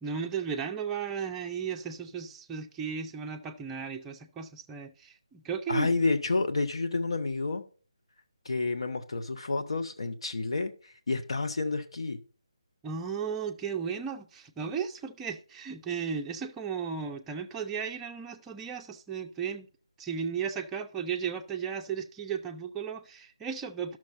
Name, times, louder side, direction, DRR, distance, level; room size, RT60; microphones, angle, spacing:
voice 1, 0.0-6.0 12.8-19.7 20.0-24.0, right 6 dB, 10° right, 0.5 m, -35 dB
voice 2, 5.7-7.6 8.4-12.2, left 3 dB, 65° left, 1.1 m, -30 dB
11.5 x 6.3 x 4.2 m
figure-of-eight pair, 155°, 3 cm